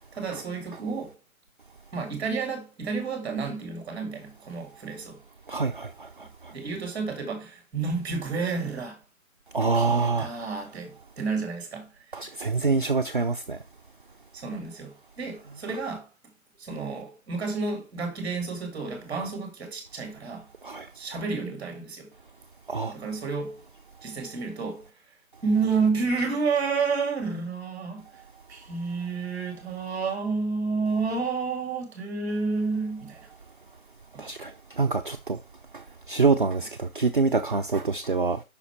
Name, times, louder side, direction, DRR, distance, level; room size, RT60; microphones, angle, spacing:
voice 1, 0.1-1.2 1.9-5.2 6.2-9.0 9.7-11.9 12.2-12.3 14.3-16.1 16.6-20.5 20.9-22.1 22.8-23.6 24.0-24.9 25.4-28.2 28.5-33.3 34.1-34.2, right 4 dB, 5° right, 1.7 m, -30 dB
voice 2, 5.5-6.5 9.5-10.3 12.1-13.6 20.6-20.9 22.7-23.0 34.2-35.4 35.7-38.4, right 4 dB, 40° right, 0.5 m, -26 dB
8.2 x 5.9 x 4.4 m
hypercardioid pair, 170°, 41 cm